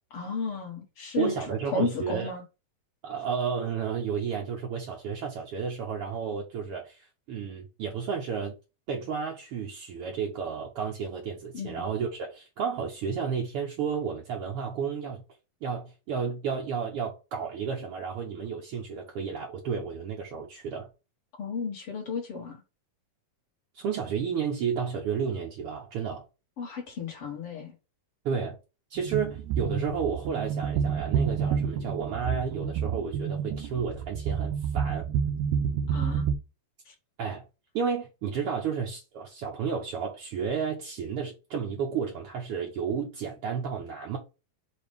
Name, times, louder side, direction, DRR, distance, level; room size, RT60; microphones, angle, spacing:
voice 1, 0.1-1.4 1.7-2.4 11.5-11.8 21.4-22.6 26.6-27.7 35.9-36.3 36.9-37.0, left 4 dB, 50° left, 2.1 m, -33 dB
voice 2, 1.2-2.3 3.0-8.5 8.9-15.2 15.6-20.9 23.7-26.2 28.2-28.6 28.9-35.0 37.2-37.4 37.7-44.2, right 6 dB, 75° right, 1.3 m, -32 dB
sound 1, 29.0-36.4, right 7 dB, 90° right, 2.5 m, -29 dB
6.5 x 2.8 x 5.2 m
omnidirectional pair, 4.0 m